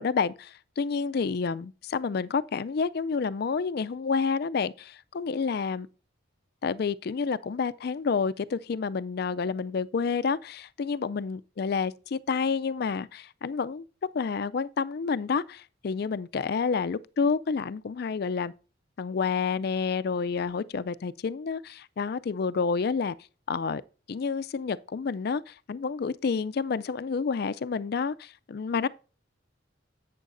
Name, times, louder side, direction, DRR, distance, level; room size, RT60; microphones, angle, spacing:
voice 1, 0.0-5.9 6.6-13.8 14.1-18.5 19.0-23.2 23.5-23.8 24.1-28.9, left 5 dB, 50° left, 0.4 m, -29 dB
11.0 x 8.3 x 2.6 m
head